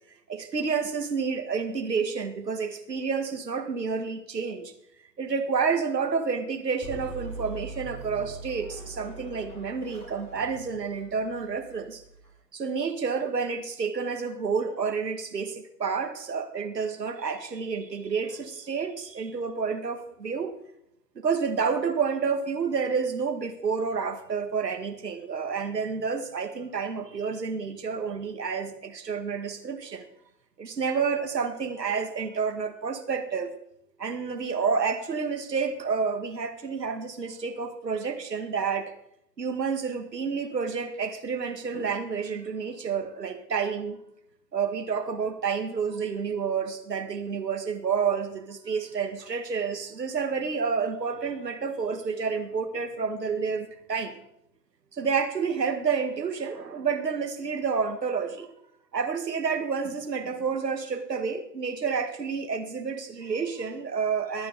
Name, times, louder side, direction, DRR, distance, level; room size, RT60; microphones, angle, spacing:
voice 1, 0.3-4.7 5.2-12.0 12.5-20.5 21.2-30.1 30.6-33.6 34.0-38.9 39.4-44.0 44.5-54.2 54.9-58.5 58.9-64.5, right 5 dB, 75° right, 6 dB, 2.0 m, -29 dB
sound 1, 6.8-12.3, right 2 dB, 15° left, 4.5 m, -42 dB
23.5 x 9.4 x 4.0 m, 0.77 s
figure-of-eight pair, 115°, 49 cm